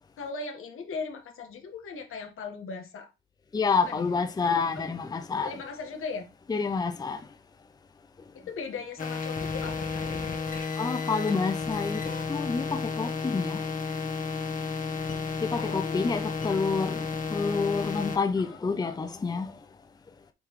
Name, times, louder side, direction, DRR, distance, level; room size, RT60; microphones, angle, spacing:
voice 1, 0.2-3.1 3.8-4.2 4.7-4.8 5.4-6.3 8.3-10.4 15.5-16.2 18.4-19.0, left 4 dB, 80° left, 1.5 m, -38 dB
voice 2, 3.5-5.5 6.5-7.2 10.8-12.0 12.3-13.6 15.4-19.5, left 4 dB, 20° left, 0.5 m, -28 dB
sound 1, 9.0-18.2, left 5 dB, 40° left, 1.3 m, -32 dB
8.1 x 4.0 x 3.1 m
wide cardioid pair, 130°, 21 cm